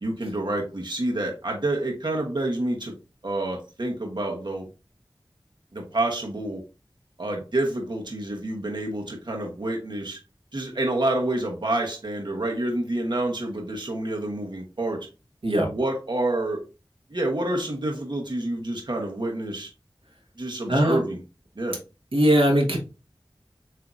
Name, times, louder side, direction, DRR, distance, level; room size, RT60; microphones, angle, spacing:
voice 1, 0.0-2.9 3.2-4.7 5.7-6.6 7.2-10.2 10.5-15.1 15.7-16.6 17.1-19.7 20.4-21.2 21.6-21.8, right 1 dB, 60° right, 1 dB, 1.1 m, -28 dB
voice 2, 20.7-21.0 22.1-22.8, equal, 85° right, 0 dB, 1.3 m, -20 dB
7.6 x 2.8 x 2.4 m, 0.32 s
wide cardioid pair, 55°, 9 cm